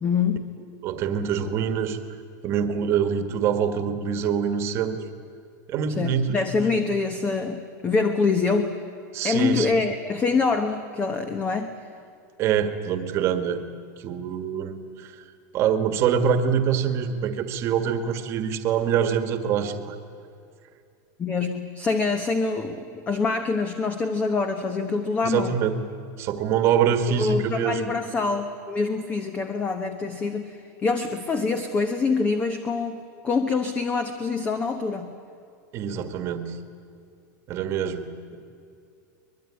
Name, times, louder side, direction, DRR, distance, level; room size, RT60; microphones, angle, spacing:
voice 1, 0.0-0.5 6.0-8.7 9.2-11.7 21.2-25.6 27.1-35.2, left 4 dB, 15° left, 8 dB, 1.0 m, -25 dB
voice 2, 0.8-2.0 2.4-5.0 5.7-6.4 9.1-9.8 12.4-13.6 14.0-15.2 15.5-20.0 25.2-25.9 26.2-27.9 35.7-36.6 37.5-38.4, right 8 dB, 25° right, 9 dB, 1.7 m, -25 dB
23.5 x 21.0 x 9.8 m, 2.5 s
supercardioid pair, 175°, 10 cm